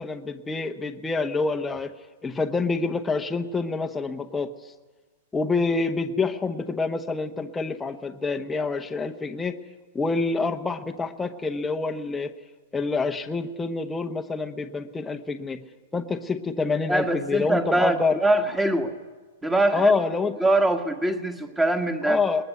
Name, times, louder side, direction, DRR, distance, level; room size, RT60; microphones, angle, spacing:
voice 1, 0.0-1.9 2.2-4.5 5.3-9.6 9.9-12.3 12.7-15.6 15.9-18.2 19.7-20.4 22.1-22.4, left 4 dB, 10° left, 5 dB, 0.9 m, -27 dB
voice 2, 16.9-18.9 19.4-20.0 20.4-22.2, right 2 dB, 10° right, 7 dB, 1.6 m, -23 dB
20.5 x 20.5 x 9.3 m, 1.4 s
hypercardioid pair, 150°, 0 cm